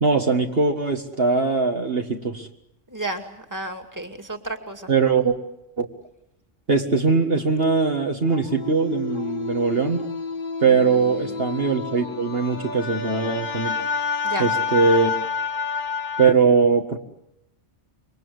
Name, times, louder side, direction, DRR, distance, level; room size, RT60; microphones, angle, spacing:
voice 1, 0.0-2.5 4.9-5.4 5.8-5.9 6.7-10.0 10.6-13.7 14.4-15.1 16.2-17.0, right 4 dB, 50° right, 2 dB, 2.0 m, -21 dB
voice 2, 2.9-4.9 14.2-14.5, right 2 dB, 15° right, 5 dB, 2.4 m, -32 dB
sound 1, 8.3-16.3, left 5 dB, 45° left, 1.8 m, -29 dB
27.0 x 24.0 x 8.0 m, 0.82 s
omnidirectional pair, 1.3 m